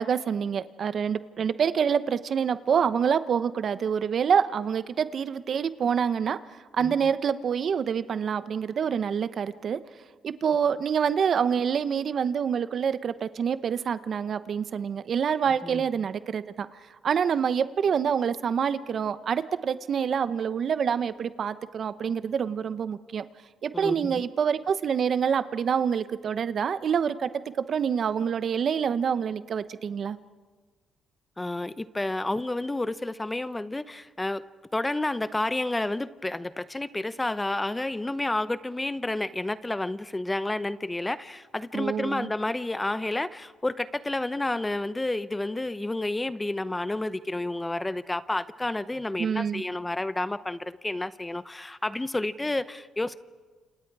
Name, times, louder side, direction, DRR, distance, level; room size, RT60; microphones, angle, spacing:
voice 1, 0.0-6.4 6.7-9.8 10.2-16.7 17.0-23.2 23.6-30.2 41.7-42.3 49.2-49.6, right 7 dB, 55° right, 13 dB, 0.9 m, -26 dB
voice 2, 23.7-24.2 31.4-34.4 34.7-53.2, left 2 dB, 15° left, 14 dB, 0.8 m, -30 dB
29.0 x 27.5 x 4.8 m, 1.4 s
cardioid pair, 90°, 0 cm